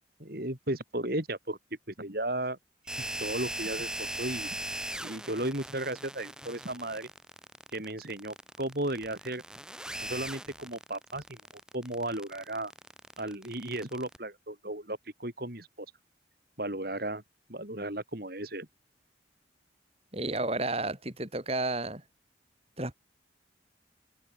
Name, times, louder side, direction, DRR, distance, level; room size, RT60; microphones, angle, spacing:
voice 1, 0.2-1.6 1.9-2.6 3.0-4.5 5.0-7.1 7.7-9.4 10.0-11.4 11.7-12.7 13.2-15.9 16.6-17.2 17.5-18.7, right 1 dB, 50° right, 4.1 m, -35 dB
sound 1, 2.9-14.2, right 1 dB, 5° right, 3.0 m, -39 dB
voice 2, 20.1-22.0 22.8-22.9, right 2 dB, 30° right, 5.2 m, -31 dB
head